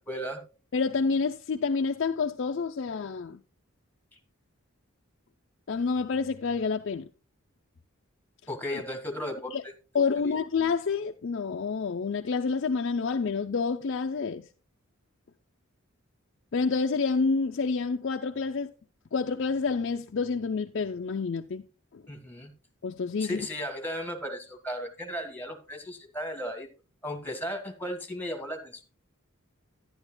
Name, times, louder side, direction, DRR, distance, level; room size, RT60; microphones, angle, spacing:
voice 1, 0.1-0.4 8.5-9.6 9.9-10.4 22.1-22.5 23.2-26.7 27.0-28.8, equal, 10° left, 1.6 m, -35 dB
voice 2, 0.7-3.4 5.7-7.1 8.7-8.8 9.5-9.6 9.9-14.5 16.5-18.7 19.1-21.6 21.9-22.0 22.8-23.5, left 4 dB, 55° left, 0.5 m, -28 dB
12.0 x 10.5 x 2.2 m
head